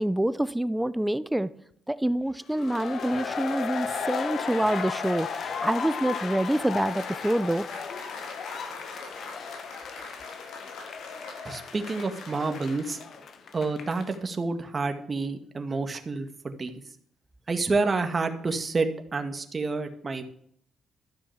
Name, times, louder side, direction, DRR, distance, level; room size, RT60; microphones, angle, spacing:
voice 1, 0.0-1.5 1.9-7.7, right 1 dB, 5° right, 16 dB, 0.6 m, -26 dB
sound 1, 2.5-14.2, left 6 dB, 60° left, 1.4 m, -35 dB
Applause, 6.4-13.7, left 2 dB, 85° left, 5.4 m, -45 dB
voice 2, 11.4-13.0 13.5-16.7 17.5-20.2, right 3 dB, 30° right, 7 dB, 1.7 m, -29 dB
13.0 x 7.1 x 7.2 m, 0.65 s
cardioid pair, 90°, 0 cm